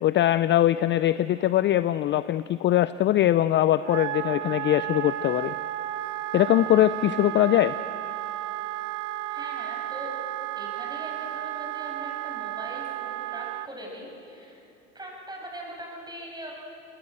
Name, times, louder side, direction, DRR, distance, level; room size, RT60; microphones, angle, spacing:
voice 1, 0.0-5.5 6.3-7.7, left 13 dB, 30° left, 15 dB, 0.5 m, -22 dB
Wind instrument woodwind instrument, 3.8-13.7, right 14 dB, 80° right, 0.7 m, -33 dB
voice 2, 9.3-10.1 10.6-14.6 14.9-16.5, right 1 dB, 10° right, -1 dB, 7.5 m, -41 dB
27.0 x 20.0 x 7.8 m, 2.9 s
hypercardioid pair, 85°, 36 cm